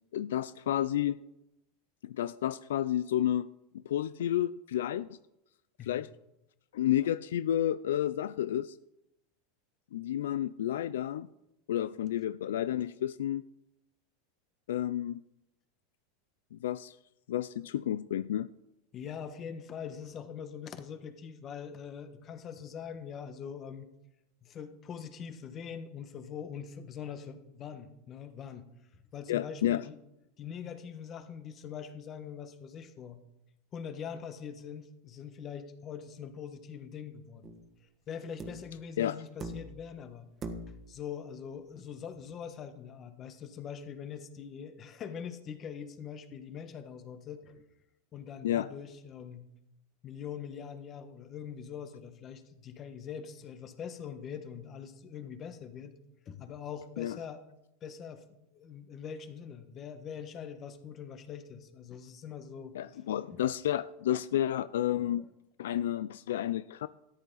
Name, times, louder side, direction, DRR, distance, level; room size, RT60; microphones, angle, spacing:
voice 1, 0.1-1.2 2.0-5.2 5.8-6.1 6.7-8.7 9.9-11.3 11.7-13.4 14.7-15.2 16.5-16.9 17.3-18.5 29.3-29.8 39.0-39.2 48.4-48.7 57.0-57.2 62.7-65.3 65.6-66.9, left 11 dB, 85° left, 15 dB, 0.3 m, -31 dB
voice 2, 18.9-23.9 24.4-28.7 29.1-30.0 30.4-33.2 33.7-37.5 38.1-40.3 40.9-47.6 48.1-49.5 50.0-55.9 56.2-57.4 57.8-62.8 63.3-63.4 65.0-65.3, left 7 dB, 35° left, 9 dB, 1.4 m, -43 dB
sound 1, 37.4-37.7 38.4-38.8 39.4-39.9 40.4-40.9 42.3-42.4, right 2 dB, 25° right, 1.6 m, -42 dB
13.5 x 11.0 x 4.0 m, 0.88 s
supercardioid pair, 120°, 0 cm